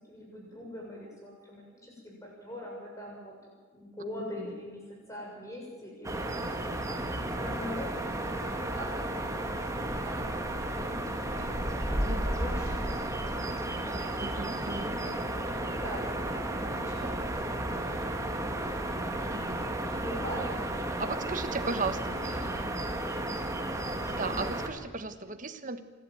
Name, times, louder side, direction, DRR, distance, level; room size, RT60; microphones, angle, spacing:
voice 1, 0.1-3.3 3.7-6.3 6.6-9.7 9.9-12.9 13.8-14.2 14.7-19.2 19.6-21.6 22.0-22.1 22.5-23.2 24.2-24.4, equal, 15° left, -2 dB, 7.1 m, -43 dB
sound 1, 6.0-24.7, right 1 dB, 15° right, 1.8 m, -33 dB
voice 2, 12.1-12.4 14.2-14.9 17.0-17.2 19.3-19.9 21.0-22.6 24.2-25.8, right 3 dB, 40° right, 9 dB, 1.3 m, -36 dB
26.5 x 12.5 x 9.2 m, 1.4 s
head